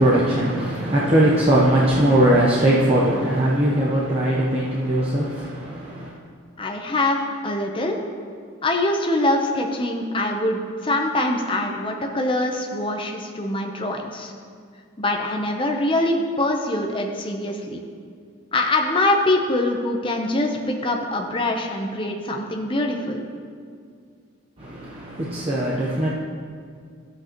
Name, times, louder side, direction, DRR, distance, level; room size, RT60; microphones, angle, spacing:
voice 1, 0.0-6.1 24.6-26.1, right 1 dB, 30° right, -6 dB, 0.8 m, -20 dB
voice 2, 6.6-8.0 8.6-14.3 15.0-17.8 18.5-23.2, left 1 dB, 25° left, 2 dB, 0.8 m, -24 dB
12.5 x 8.0 x 3.0 m, 2.1 s
head